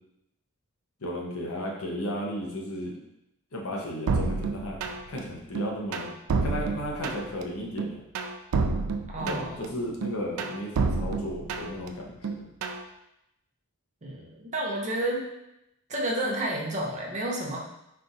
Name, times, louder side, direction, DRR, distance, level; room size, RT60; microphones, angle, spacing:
voice 1, 1.0-3.0 3.5-4.8 5.1-6.1 6.4-8.0 9.2-12.5, equal, 70° left, -2 dB, 0.9 m, -34 dB
sound 1, 4.1-5.2 5.5-7.4 7.8-9.7 10.0-11.9 12.2-12.8, right 4 dB, 70° right, 0.4 m, -29 dB
voice 2, 9.1-9.7 14.0-15.2 15.9-17.6, right 1 dB, 35° right, -1 dB, 0.6 m, -30 dB
4.3 x 2.5 x 3.9 m, 0.85 s
head